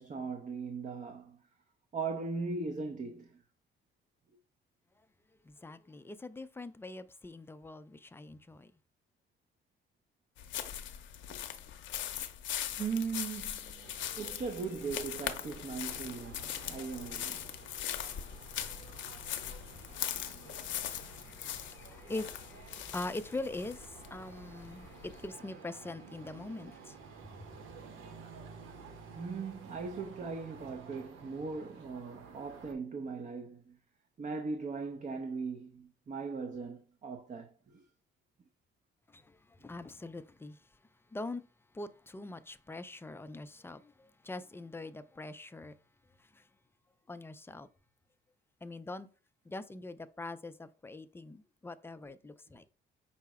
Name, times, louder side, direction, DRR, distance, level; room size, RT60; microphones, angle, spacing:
voice 1, 0.0-1.4 1.9-3.4 11.3-11.4 12.7-13.9 14.2-17.5 26.6-26.7 29.1-33.8 34.2-37.8, right 4 dB, 40° right, 0.6 m, -39 dB
voice 2, 5.4-8.7 19.7-27.5 39.1-40.7 41.1-41.4 41.7-45.7 46.2-46.5 47.1-47.7 48.6-49.1 49.5-52.6, left 2 dB, 10° left, 0.4 m, -43 dB
sound 1, 10.4-25.3, left 10 dB, 70° left, 0.6 m, -41 dB
sound 2, 13.7-32.7, right 5 dB, 85° right, 0.8 m, -52 dB
5.5 x 2.0 x 4.7 m
cardioid pair, 90°, 20 cm